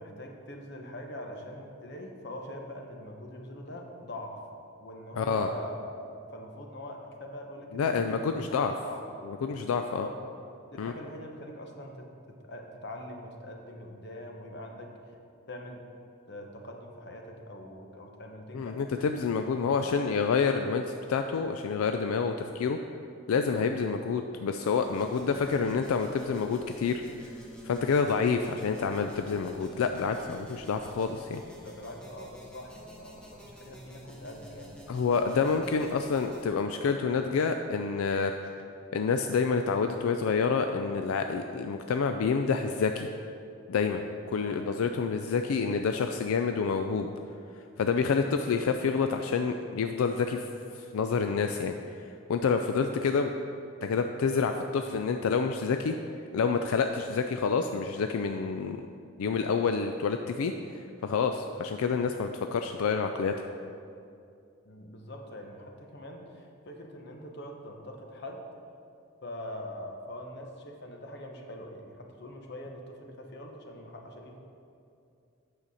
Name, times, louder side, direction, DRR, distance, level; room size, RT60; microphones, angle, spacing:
voice 1, 0.0-4.5 4.8-8.3 8.8-9.0 9.8-10.2 10.7-15.1 15.5-15.8 16.3-19.1 19.5-19.9 31.6-34.7 44.3-44.6 64.6-68.4 69.2-74.4, left 1 dB, 50° left, 2 dB, 0.9 m, -43 dB
voice 2, 5.1-5.5 7.7-8.7 9.3-10.1 10.8-10.9 18.5-22.8 23.3-27.0 27.6-31.4 34.9-38.3 38.9-43.1 43.7-47.1 47.8-50.5 50.7-51.7 52.3-53.3 53.8-56.0 56.3-58.9 59.2-60.5 61.0-63.3, left 5 dB, 80° left, 6 dB, 0.3 m, -28 dB
sound 1, 24.8-36.4, equal, 5° left, 0.8 m, -49 dB
8.8 x 6.6 x 4.1 m, 2.5 s
head